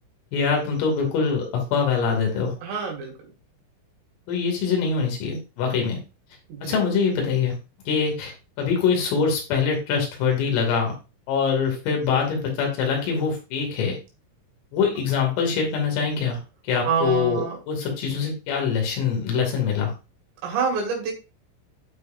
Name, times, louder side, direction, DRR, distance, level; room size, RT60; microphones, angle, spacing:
voice 1, 0.3-2.5 4.3-6.0 6.6-7.6 7.9-10.9 11.3-14.0 14.7-19.9, left 6 dB, 80° left, 1 dB, 5.1 m, -24 dB
voice 2, 2.6-3.1 6.5-6.8 16.8-17.6 20.4-21.1, right 5 dB, 75° right, 0 dB, 4.8 m, -26 dB
14.0 x 5.0 x 2.6 m, 0.29 s
omnidirectional pair, 5.9 m